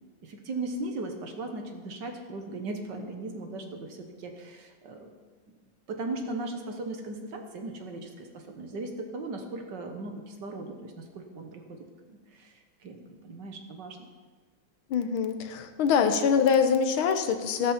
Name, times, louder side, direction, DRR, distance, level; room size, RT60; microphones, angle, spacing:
voice 1, 0.2-5.1 5.9-11.8 12.1-12.5 12.8-14.0, right 2 dB, 60° right, 4 dB, 1.8 m, -38 dB
voice 2, 14.9-17.7, left 6 dB, 80° left, 8 dB, 1.7 m, -24 dB
13.5 x 12.5 x 4.4 m, 1.4 s
omnidirectional pair, 2.3 m